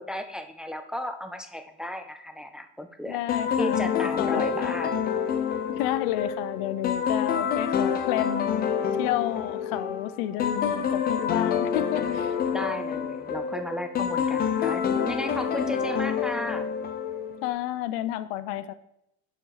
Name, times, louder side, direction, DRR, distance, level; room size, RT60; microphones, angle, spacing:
voice 1, 0.0-3.2 3.6-4.9 12.5-16.7, equal, 5° right, 7 dB, 0.4 m, -34 dB
voice 2, 3.1-4.6 5.7-8.7 9.0-12.4 17.4-18.7, left 13 dB, 70° left, 14 dB, 0.6 m, -31 dB
sound 1, 3.3-17.5, left 7 dB, 30° left, 0.8 m, -27 dB
7.0 x 5.4 x 4.8 m, 0.78 s
supercardioid pair, 135°, 29 cm